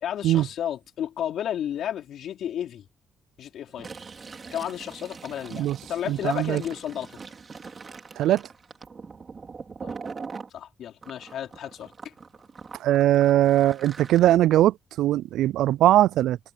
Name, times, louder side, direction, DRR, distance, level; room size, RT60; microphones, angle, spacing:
voice 1, 0.0-2.8 3.4-3.9 4.5-7.1 9.8-9.9 10.5-12.1, left 10 dB, 70° left, 4.3 m, -32 dB
Fill (with liquid), 3.7-10.5 11.0-14.3, right 5 dB, 40° right, 4.7 m, -42 dB
voice 2, 6.1-6.6 8.2-8.4 12.8-16.4, right 13 dB, 85° right, 0.3 m, -20 dB
cardioid pair, 90°, 0 cm